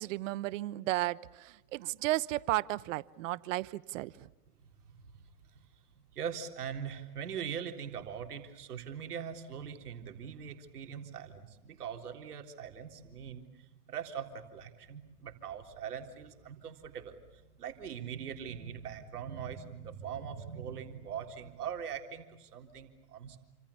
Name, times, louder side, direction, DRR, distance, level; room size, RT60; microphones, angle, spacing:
voice 1, 0.0-4.3, right 17 dB, 55° right, 20 dB, 1.1 m, -34 dB
voice 2, 6.1-23.4, right 8 dB, 80° right, 5 dB, 3.9 m, -42 dB
29.5 x 27.0 x 7.1 m, 1.0 s
hypercardioid pair, 120°, 45 cm